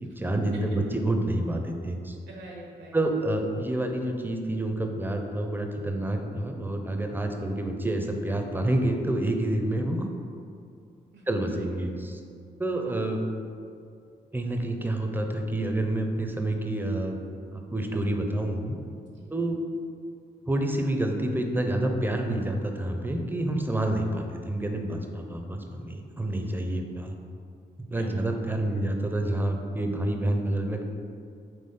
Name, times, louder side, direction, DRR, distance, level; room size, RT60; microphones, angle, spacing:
voice 1, 0.0-2.1 2.9-10.1 11.3-11.9 12.6-13.2 14.3-17.2 17.5-18.8 19.3-19.6 20.5-27.1 27.9-30.8, right 1 dB, 10° right, 3 dB, 0.6 m, -28 dB
voice 2, 2.3-3.0 11.1-11.7 19.0-19.3 27.9-28.2, right 1 dB, 75° right, -2 dB, 1.0 m, -45 dB
4.2 x 3.0 x 3.7 m, 2.4 s
supercardioid pair, 50°, 19 cm